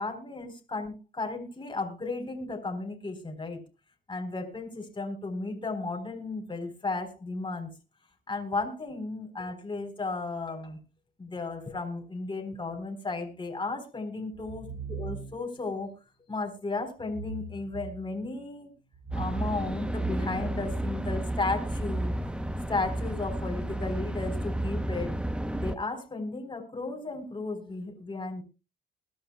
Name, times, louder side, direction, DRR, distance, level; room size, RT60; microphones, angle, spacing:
voice 1, 0.0-3.6 4.1-7.7 8.3-10.8 11.2-15.9 16.3-18.7 19.1-22.2 22.7-25.2 25.5-28.4, left 3 dB, 25° left, 4 dB, 3.8 m, -34 dB
sound 1, 14.3-15.6 17.0-18.4 18.9-21.4, right 5 dB, 55° right, 4.3 m, -42 dB
sound 2, 19.1-25.8, right 1 dB, 5° right, 0.8 m, -32 dB
21.5 x 11.5 x 2.2 m, 0.29 s
cardioid pair, 90°, 20 cm